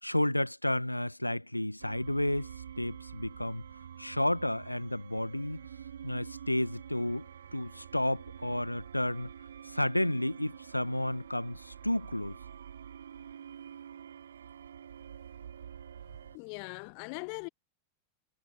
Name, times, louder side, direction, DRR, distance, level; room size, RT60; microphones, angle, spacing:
voice 1, 0.0-2.5 2.8-3.6 4.0-5.6 6.0-7.3 7.5-9.3 9.7-12.4, left 1 dB, 85° left, 1.5 m, -31 dB
sound 1, 1.8-16.4, right 8 dB, 65° right, 1.5 m, -47 dB
voice 2, 16.3-17.5, left 40 dB or more, 45° left, 0.7 m, -40 dB
figure-of-eight pair, 90°, 0 cm